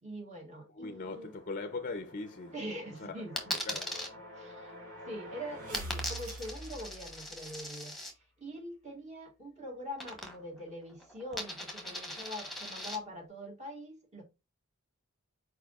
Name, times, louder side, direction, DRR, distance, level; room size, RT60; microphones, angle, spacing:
voice 1, 0.0-1.3 2.5-3.8 4.4-4.7 5.1-7.9 8.4-14.2, equal, 35° right, 1.5 m, -43 dB
voice 2, 0.7-2.6 3.0-4.0, left 3 dB, 40° left, 0.5 m, -40 dB
sound 1, 0.8-7.6, right 1 dB, 85° right, 2.1 m, -47 dB
Coin (dropping), 3.4-4.1 5.7-8.1 10.0-10.6 10.9-13.0, left 1 dB, ahead, 1.1 m, -39 dB
4.8 x 4.6 x 2.4 m
head